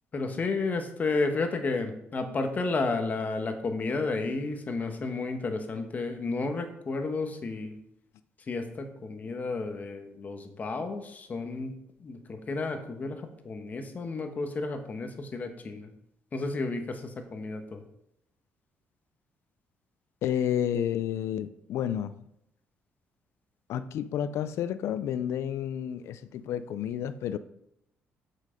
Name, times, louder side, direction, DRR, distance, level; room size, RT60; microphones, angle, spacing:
voice 1, 0.1-7.8 8.5-11.7 12.0-15.9 16.3-17.8, left 3 dB, 35° left, 6 dB, 1.4 m, -32 dB
voice 2, 20.2-22.2 23.7-27.4, left 9 dB, 75° left, 13 dB, 0.5 m, -30 dB
7.6 x 6.3 x 5.2 m, 0.79 s
cardioid pair, 110°, 5 cm